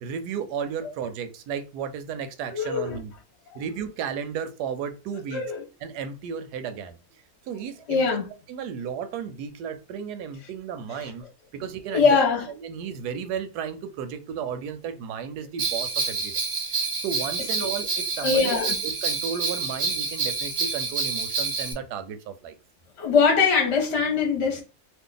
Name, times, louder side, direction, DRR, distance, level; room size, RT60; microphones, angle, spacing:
voice 1, 0.0-3.1 3.5-5.4 5.8-7.0 7.5-8.0 8.5-11.2 11.5-12.2 12.6-16.3 17.0-22.6, right 7 dB, 85° right, 1.1 m, -34 dB
voice 2, 2.5-3.0 5.3-5.6 7.9-8.2 10.9-11.1 11.9-12.5 18.2-18.7 23.0-24.6, left 5 dB, 55° left, 0.8 m, -22 dB
Bell, 15.6-21.7, right 4 dB, 40° right, 0.8 m, -28 dB
2.6 x 2.4 x 3.7 m
omnidirectional pair, 1.7 m